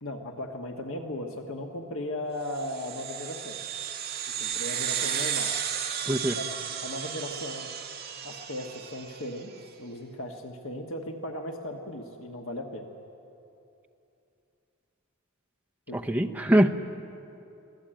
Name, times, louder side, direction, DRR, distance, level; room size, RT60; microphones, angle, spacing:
voice 1, 0.0-3.6 4.4-5.5 6.1-6.4 6.8-7.7 8.2-9.5 9.8-12.9 15.9-16.0, left 1 dB, 65° left, 3 dB, 1.5 m, -37 dB
sound 1, 2.5-9.3, right 8 dB, 45° right, 2.1 m, -33 dB
voice 2, 6.1-6.4 15.9-16.7, right 1 dB, 5° right, 3 dB, 0.8 m, -23 dB
24.5 x 17.5 x 9.0 m, 2.8 s
head